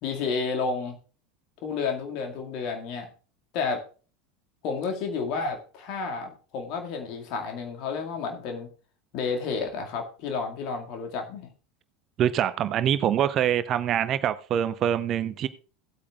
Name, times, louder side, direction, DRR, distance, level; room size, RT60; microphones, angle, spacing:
voice 1, 0.0-1.0 1.6-3.1 3.5-3.8 4.6-8.7 9.1-11.5, left 5 dB, 50° left, 4 dB, 2.2 m, -31 dB
voice 2, 12.2-15.5, right 10 dB, 40° right, 14 dB, 0.6 m, -24 dB
17.0 x 8.5 x 2.4 m, 0.37 s
figure-of-eight pair, 75°, 0 cm